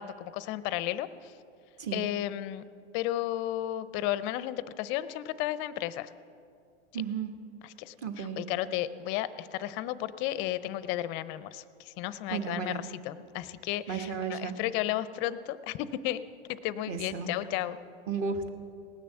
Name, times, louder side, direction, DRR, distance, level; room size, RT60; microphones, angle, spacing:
voice 1, 0.0-1.3 1.9-2.6 2.9-6.1 7.6-16.2 16.5-17.8, left 13 dB, 35° left, 16 dB, 0.4 m, -33 dB
voice 2, 6.9-7.3 8.0-8.4 12.3-12.8 13.9-14.6 16.9-17.3 18.1-18.5, right 6 dB, 40° right, 7 dB, 1.3 m, -33 dB
18.5 x 6.9 x 7.6 m, 2.4 s
hypercardioid pair, 125°, 36 cm